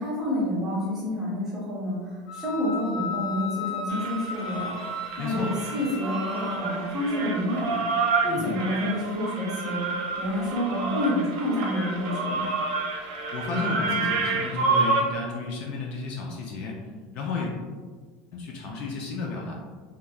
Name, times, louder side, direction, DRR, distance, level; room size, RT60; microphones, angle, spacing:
voice 1, 0.0-4.7 5.2-12.4, left 1 dB, 15° right, -6 dB, 0.8 m, -29 dB
Wind instrument woodwind instrument, 2.3-6.5, left 3 dB, 25° left, 1.4 m, -35 dB
sound 1, 3.9-15.0, right 3 dB, 90° right, 0.5 m, -29 dB
voice 2, 5.2-5.5 8.3-8.5 13.3-16.8 17.1-17.5 18.3-19.5, left 3 dB, 45° left, -1 dB, 0.4 m, -32 dB
2.9 x 2.2 x 2.3 m, 1.5 s
cardioid pair, 170°, 3 cm